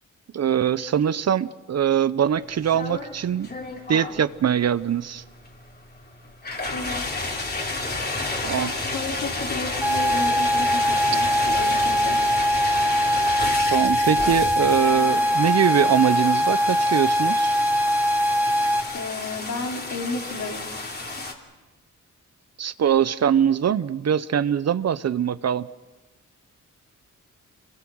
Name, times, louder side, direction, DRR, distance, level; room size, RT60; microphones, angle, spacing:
voice 1, 0.3-3.5 3.9-5.2 8.4-8.7 13.7-17.5 22.6-25.7, right 9 dB, 55° right, 16 dB, 0.7 m, -22 dB
sound 1, 2.4-21.3, left 2 dB, 30° left, 2.9 m, -31 dB
voice 2, 6.7-7.0 8.6-12.2 18.9-20.7, left 3 dB, 65° left, 1 dB, 3.7 m, -33 dB
sound 2, 9.8-18.8, equal, 5° right, 2.3 m, -22 dB
27.0 x 22.5 x 6.3 m, 1.2 s
cardioid pair, 85°, 31 cm